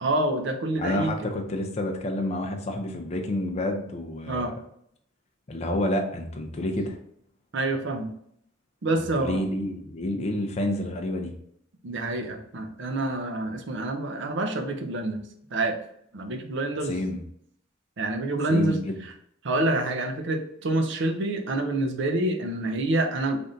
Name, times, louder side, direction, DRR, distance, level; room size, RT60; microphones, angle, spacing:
voice 1, 0.0-1.1 4.3-4.5 7.5-8.1 8.8-9.4 11.8-15.2 15.5-15.8 16.1-17.0 18.0-19.1 19.4-23.4, right 2 dB, 60° right, 5 dB, 0.6 m, -27 dB
voice 2, 0.8-4.5 5.5-7.0 9.0-11.3 16.9-17.2 18.5-19.0, left 1 dB, 30° left, 2 dB, 0.5 m, -29 dB
3.4 x 2.6 x 3.8 m, 0.70 s
head